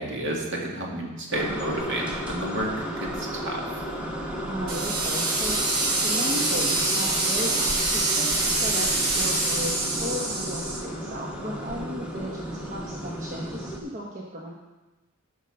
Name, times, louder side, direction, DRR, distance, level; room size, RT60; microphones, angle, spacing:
voice 1, 0.0-2.7 3.0-3.6, right 1 dB, 55° right, -2 dB, 2.1 m, -30 dB
sound 1, 1.3-13.8, equal, 5° right, 1.2 m, -34 dB
voice 2, 4.4-14.5, equal, 35° right, -3 dB, 1.1 m, -35 dB
sound 2, 4.7-10.8, right 2 dB, 75° right, 3.0 m, -25 dB
11.5 x 5.6 x 6.5 m, 1.1 s
head